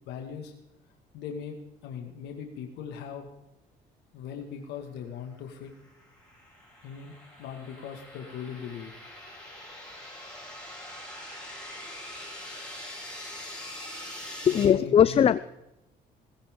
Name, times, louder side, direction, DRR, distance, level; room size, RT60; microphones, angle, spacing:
voice 1, 0.1-0.5 1.1-1.6 1.8-3.3 4.1-5.7 6.8-7.1 7.4-8.9 13.8-14.2 14.5-15.3, left 7 dB, 85° left, 3 dB, 2.1 m, -39 dB
sound 1, 5.7-14.6, left 1 dB, 5° left, 8.0 m, -43 dB
voice 2, 14.5-15.4, left 8 dB, 35° left, 15 dB, 0.5 m, -20 dB
19.5 x 15.5 x 3.8 m, 0.91 s
cardioid pair, 110°, 17 cm